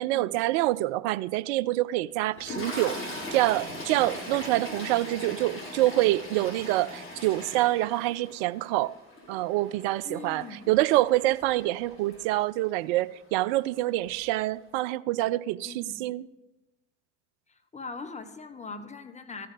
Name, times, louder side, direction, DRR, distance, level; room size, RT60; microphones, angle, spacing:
voice 1, 0.0-3.0 3.3-8.9 9.3-16.3, right 17 dB, 60° right, 0.5 m, -26 dB
Toilet flush, 2.4-12.7 13.6-13.8 14.0-14.2, left 1 dB, 35° left, 3.9 m, -40 dB
voice 2, 4.6-4.9 10.0-10.6 15.6-16.0 17.5-19.5, left 4 dB, 20° left, 1.1 m, -41 dB
14.0 x 5.6 x 5.2 m
hypercardioid pair, 65°, 36 cm